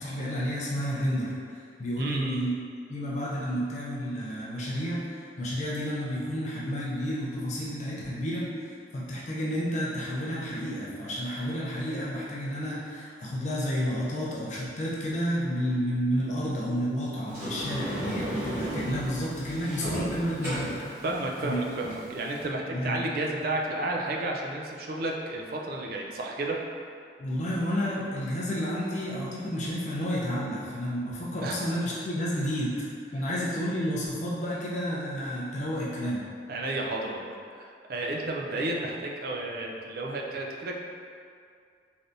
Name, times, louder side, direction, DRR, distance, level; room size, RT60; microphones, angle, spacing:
voice 1, 0.0-1.4 1.8-2.5 2.9-20.8 21.4-21.6 22.7-23.0 27.2-32.8 33.1-36.3, equal, 40° left, -6 dB, 0.4 m, -31 dB
voice 2, 2.0-2.4 21.0-26.6 31.4-31.6 33.2-33.3 36.5-40.8, right 2 dB, 55° right, 0 dB, 0.4 m, -32 dB
Sliding door, 17.3-22.4, equal, 15° right, 1.2 m, -35 dB
3.3 x 2.6 x 2.5 m, 2.3 s
head